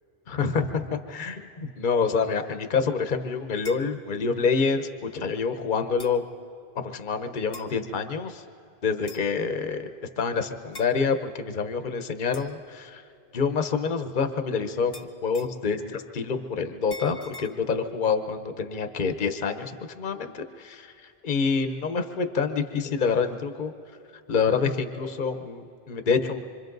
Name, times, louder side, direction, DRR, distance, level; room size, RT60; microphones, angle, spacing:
voice 1, 0.3-6.2 6.8-8.4 8.8-9.9 10.2-13.0 13.3-20.9 21.2-23.7 24.3-26.4, left 5 dB, 45° left, 8 dB, 1.1 m, -27 dB
sound 1, 3.6-3.9 5.0-5.1 6.0-6.2 7.5-7.8 9.1-9.4 10.7-10.9 12.3-12.6 14.9-15.6 16.9-17.5, left 2 dB, 25° left, 0.8 m, -43 dB
26.0 x 25.0 x 3.9 m, 2.5 s
omnidirectional pair, 1.2 m